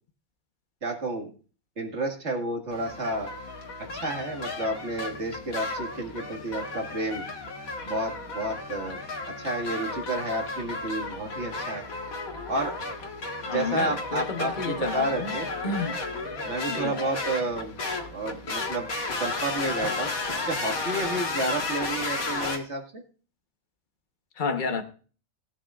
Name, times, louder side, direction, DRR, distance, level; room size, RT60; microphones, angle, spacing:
voice 1, 0.8-1.3 1.8-3.3 3.9-7.3 7.8-9.0 9.3-11.8 12.5-12.8 13.5-15.5 16.4-17.7 18.1-18.9 19.2-20.1 20.5-23.0, right 2 dB, 55° right, 2.3 m, -31 dB
sound 1, 2.7-22.6, left 3 dB, 85° left, 2.2 m, -33 dB
voice 2, 13.5-15.3 15.6-16.0 16.7-16.9 24.4-24.8, left 4 dB, 35° left, 1.3 m, -30 dB
18.5 x 9.1 x 2.5 m
omnidirectional pair, 1.4 m